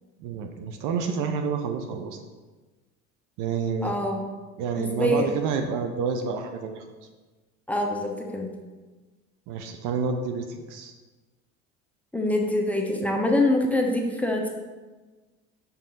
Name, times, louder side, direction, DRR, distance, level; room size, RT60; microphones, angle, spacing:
voice 1, 0.2-2.2 3.4-4.0 4.6-6.8 9.5-10.9, right 5 dB, 55° right, 5 dB, 0.8 m, -29 dB
voice 2, 3.8-4.3 4.7-5.3 7.7-8.5 12.1-14.5, left 1 dB, 5° left, 0 dB, 1.0 m, -25 dB
6.1 x 5.4 x 3.9 m, 1.3 s
hypercardioid pair, 65°, 39 cm